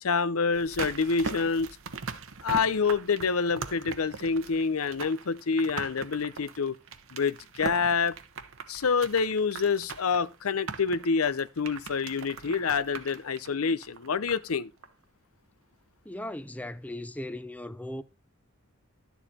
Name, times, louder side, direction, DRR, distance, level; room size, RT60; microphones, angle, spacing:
voice 1, 0.0-1.8 2.4-6.8 7.1-8.2 8.7-14.7, left 5 dB, 85° left, 0.7 m, -27 dB
sound 1, 0.5-14.6 14.8-14.9, right 4 dB, 70° right, 1.1 m, -40 dB
voice 2, 16.0-18.0, left 1 dB, 5° left, 0.6 m, -37 dB
12.0 x 7.3 x 4.3 m
head